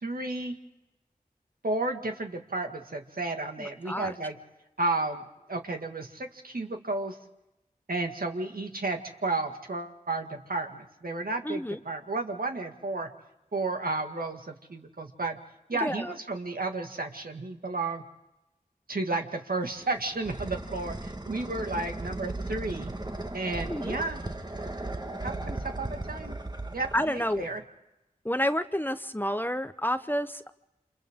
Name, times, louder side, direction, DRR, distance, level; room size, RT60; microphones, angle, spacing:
voice 1, 0.0-0.5 1.6-4.4 4.8-5.2 5.5-7.2 7.9-13.1 13.5-15.4 15.7-18.0 18.9-22.9 23.3-24.2 25.2-26.4 26.7-27.6, right 2 dB, 75° right, 4 dB, 2.0 m, -32 dB
voice 2, 3.6-4.1 11.4-11.8 15.7-16.1 23.7-24.0 26.9-27.5 28.2-30.5, equal, 15° left, 11 dB, 0.8 m, -30 dB
sound 1, 19.6-27.6, right 2 dB, 30° right, 1.6 m, -37 dB
29.0 x 27.5 x 3.7 m, 0.95 s
wide cardioid pair, 50°, 15 cm